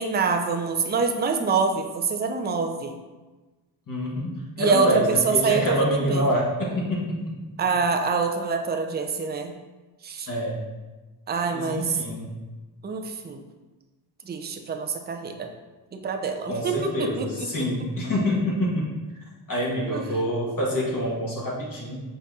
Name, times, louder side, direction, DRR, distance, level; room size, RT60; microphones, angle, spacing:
voice 1, 0.0-2.9 4.6-5.6 5.9-6.3 7.6-9.5 10.0-10.3 11.3-12.0 12.8-13.4 14.3-15.5 15.9-17.7 19.9-20.2, right 5 dB, 20° right, 5 dB, 0.4 m, -26 dB
voice 2, 3.9-7.3 10.3-10.6 11.5-12.3 16.4-18.9 19.5-22.0, equal, 45° left, -4 dB, 1.2 m, -26 dB
5.0 x 4.1 x 2.4 m, 1.2 s
cardioid pair, 70°, 49 cm